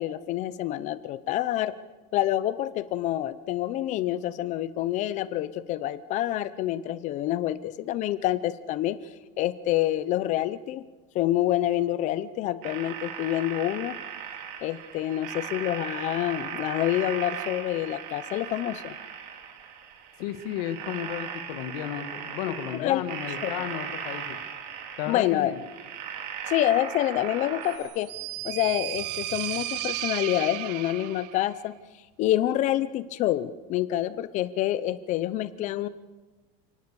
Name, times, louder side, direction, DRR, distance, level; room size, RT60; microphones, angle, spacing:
voice 1, 0.0-1.7 2.1-9.0 9.4-10.8 11.1-14.0 14.6-18.9 22.8-23.0 23.4-23.5 25.1-25.5 26.5-28.1 28.4-31.7 32.2-35.9, left 13 dB, 35° left, 15 dB, 0.7 m, -27 dB
sound 1, 12.6-27.8, right 8 dB, 50° right, 3.3 m, -38 dB
voice 2, 20.2-24.4 25.0-25.6, left 11 dB, 60° left, 9 dB, 1.7 m, -33 dB
sound 2, 27.7-31.4, right 16 dB, 75° right, 1.1 m, -34 dB
29.5 x 18.5 x 7.0 m, 1.2 s
cardioid pair, 170°, 21 cm